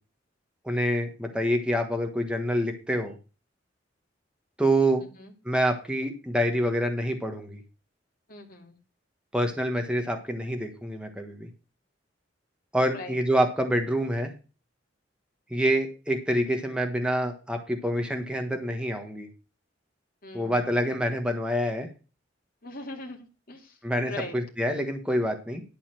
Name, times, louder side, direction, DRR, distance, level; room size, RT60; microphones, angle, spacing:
voice 1, 0.6-3.1 4.6-5.0 5.4-7.6 9.3-11.5 12.7-14.3 15.5-19.3 20.3-21.9 23.8-25.6, equal, 5° right, 3 dB, 1.3 m, -26 dB
voice 2, 5.0-5.3 8.3-8.8 12.9-13.2 20.2-20.7 22.6-23.8 24.1-24.4, left 2 dB, 50° left, 1 dB, 2.5 m, -41 dB
11.5 x 4.1 x 7.5 m, 0.33 s
head